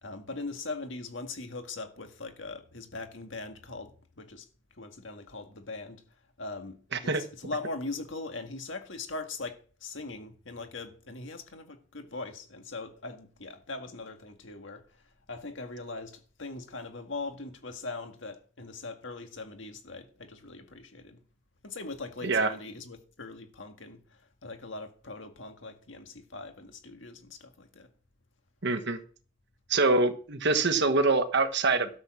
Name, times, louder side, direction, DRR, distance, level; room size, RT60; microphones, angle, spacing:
voice 1, 0.0-4.5 4.8-6.0 6.4-14.8 15.3-21.2 21.6-24.0 24.4-27.9, left 3 dB, 70° left, 1.8 m, -40 dB
voice 2, 6.9-7.2 22.2-22.5 28.6-29.0 29.7-31.9, right 3 dB, 60° right, 1.4 m, -25 dB
12.5 x 7.2 x 6.3 m
head